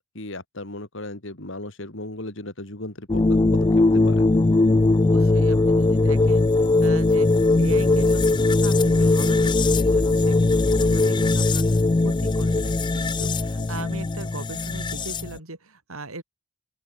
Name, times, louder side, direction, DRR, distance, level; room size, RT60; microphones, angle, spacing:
voice 1, 0.1-4.2 13.6-13.9, left 2 dB, 60° left, 3.1 m, -36 dB
sound 1, 3.1-15.4, left 2 dB, 20° left, 0.4 m, -20 dB
voice 2, 5.0-6.5 6.8-7.3 7.6-8.2 8.5-16.2, right 2 dB, 85° right, 4.4 m, -39 dB
open air
head